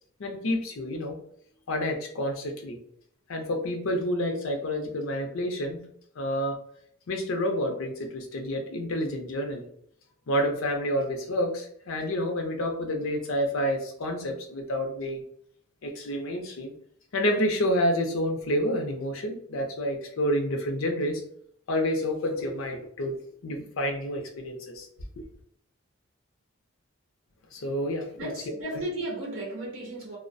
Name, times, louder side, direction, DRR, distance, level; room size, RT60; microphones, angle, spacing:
voice 1, 0.2-1.2 1.7-2.8 3.3-5.9 6.2-6.6 7.1-9.7 10.3-15.2 15.8-16.7 17.1-21.2 21.7-24.9 25.2-25.3 27.5-28.3 28.7-28.8, equal, 80° left, 4 dB, 0.5 m, -29 dB
voice 2, 28.1-30.2, right 1 dB, 70° right, -2 dB, 0.7 m, -34 dB
2.3 x 2.1 x 2.5 m, 0.63 s
head